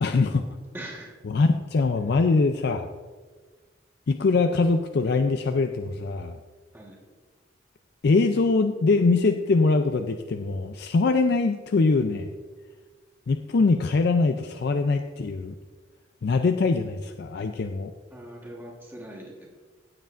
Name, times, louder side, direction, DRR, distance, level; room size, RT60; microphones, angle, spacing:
voice 1, 0.0-0.4 1.3-2.9 4.1-6.4 8.0-12.3 13.3-15.5 16.2-17.9, left 3 dB, 55° left, 6 dB, 0.4 m, -23 dB
voice 2, 0.7-1.2 6.7-7.0 18.1-19.5, right 1 dB, 10° right, -2 dB, 1.3 m, -41 dB
16.0 x 8.0 x 2.5 m, 1.4 s
head